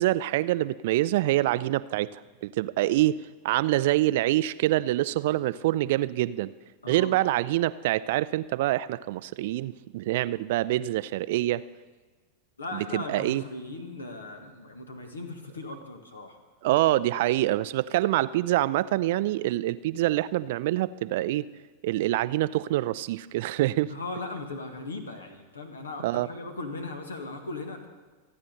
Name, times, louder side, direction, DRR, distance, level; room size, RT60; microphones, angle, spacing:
voice 1, 0.0-3.2 3.4-6.5 6.9-11.6 12.7-13.4 16.6-21.5 21.8-23.9 26.0-26.3, right 15 dB, 50° right, 17 dB, 0.4 m, -26 dB
voice 2, 6.8-7.2 12.6-16.4 23.9-27.9, left 2 dB, 75° left, 6 dB, 1.8 m, -38 dB
27.0 x 9.7 x 4.0 m, 1.3 s
figure-of-eight pair, 90°, 0 cm